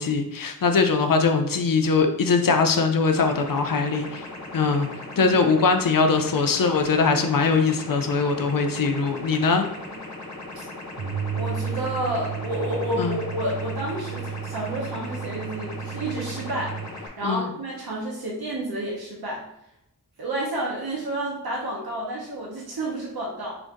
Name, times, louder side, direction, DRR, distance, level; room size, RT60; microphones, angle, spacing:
voice 1, 0.0-4.2 4.5-4.9 5.2-9.7 13.0-13.2 17.2-17.5, left 4 dB, 65° left, 6 dB, 0.7 m, -21 dB
sound 1, 3.1-17.1, left 2 dB, 50° left, 1.4 m, -38 dB
sound 2, 11.0-16.9, right 7 dB, 55° right, 0.7 m, -33 dB
voice 2, 11.3-16.7 17.2-19.4 20.2-23.6, right 1 dB, 90° right, -3 dB, 1.0 m, -30 dB
4.9 x 2.6 x 3.7 m, 0.81 s
wide cardioid pair, 55°, 36 cm